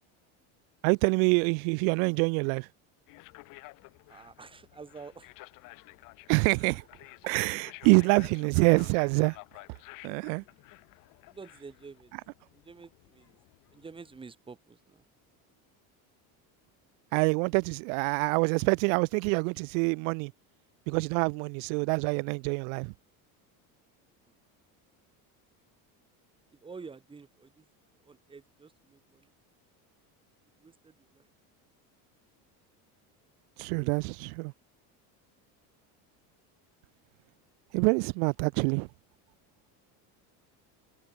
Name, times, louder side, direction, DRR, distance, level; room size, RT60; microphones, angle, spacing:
voice 1, 0.8-2.7 6.3-6.8 7.2-9.4 10.0-10.4 17.1-20.3 20.9-22.9 33.6-34.5 37.7-38.9, right 39 dB, 85° right, 0.5 m, -26 dB
sound 1, 3.1-14.2, left 24 dB, 50° left, 1.4 m, -53 dB
voice 2, 4.1-5.3 7.8-8.4 11.2-12.1 12.5-13.4 13.7-15.0 24.2-24.4 26.5-27.7 28.0-29.3 30.6-31.3, right 4 dB, 15° right, 3.9 m, -49 dB
cardioid pair, 180°, 40 cm